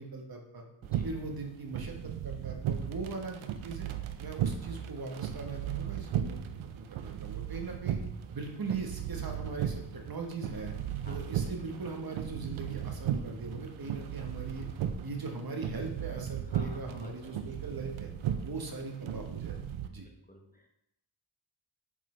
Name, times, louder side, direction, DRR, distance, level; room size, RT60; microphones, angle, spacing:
voice 1, 0.0-0.6 1.0-3.9 4.2-6.4 6.7-8.0 8.3-10.7 11.1-14.7 15.0-18.1 18.4-19.6 19.9-20.0, right 3 dB, 50° right, 2 dB, 1.2 m, -40 dB
sound 1, 0.8-19.9, right 9 dB, 80° right, 0.6 m, -36 dB
voice 2, 16.5-17.3 20.0-20.7, equal, 20° left, 2 dB, 1.1 m, -53 dB
8.3 x 3.8 x 3.2 m, 0.80 s
cardioid pair, 45°, 47 cm